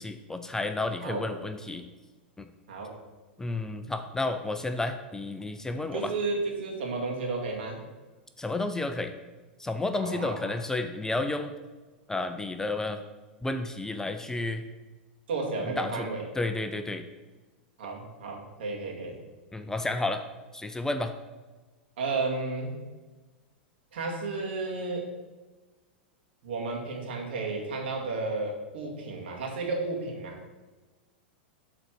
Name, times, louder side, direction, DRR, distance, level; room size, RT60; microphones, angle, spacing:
voice 1, 0.0-1.9 2.4-2.5 3.4-6.1 8.4-9.1 9.6-11.5 12.1-13.0 13.4-14.6 15.6-16.1 16.3-17.1 19.5-20.2 20.5-21.1, left 2 dB, 10° left, 8 dB, 0.5 m, -31 dB
voice 2, 5.9-7.8 10.0-10.5 15.3-16.2 17.8-19.1 22.0-22.8 23.9-25.1 26.4-30.4, right 3 dB, 70° right, 0 dB, 2.1 m, -32 dB
7.8 x 4.0 x 6.0 m, 1.3 s
hypercardioid pair, 100°, 6 cm